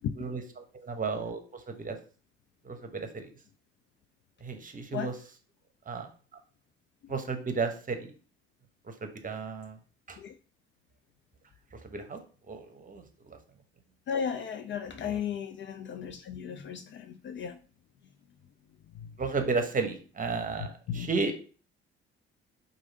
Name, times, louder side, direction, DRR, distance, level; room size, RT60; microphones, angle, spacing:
voice 1, 0.7-2.0 2.6-3.3 4.4-5.1 5.9-6.1 7.1-8.1 8.9-9.8 10.1-10.2 11.8-13.4 15.0-15.2 19.2-21.4, right 4 dB, 25° right, 0.9 m, -33 dB
voice 2, 14.1-17.6 19.0-19.1 20.6-21.1, left 7 dB, 35° left, 0.4 m, -35 dB
4.6 x 2.6 x 3.9 m
figure-of-eight pair, 50°, 33 cm